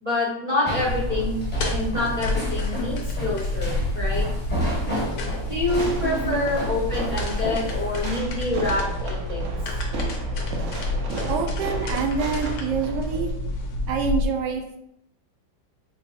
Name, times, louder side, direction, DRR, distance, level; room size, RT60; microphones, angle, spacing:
voice 1, 0.0-1.4 1.7-4.3 5.4-9.5 13.2-13.3, left 2 dB, 35° right, -5 dB, 0.5 m, -27 dB
sound 1, 0.6-8.0, equal, 5° left, 0.8 m, -31 dB
sound 2, 0.9-14.2, left 1 dB, 65° left, 1.0 m, -29 dB
Fireworks, 5.8-13.2, right 2 dB, 90° right, 0.6 m, -35 dB
voice 2, 6.0-6.5 11.3-13.3 13.9-14.8, right 6 dB, 75° right, 4 dB, 1.0 m, -27 dB
4.5 x 2.0 x 4.1 m, 0.76 s
omnidirectional pair, 2.1 m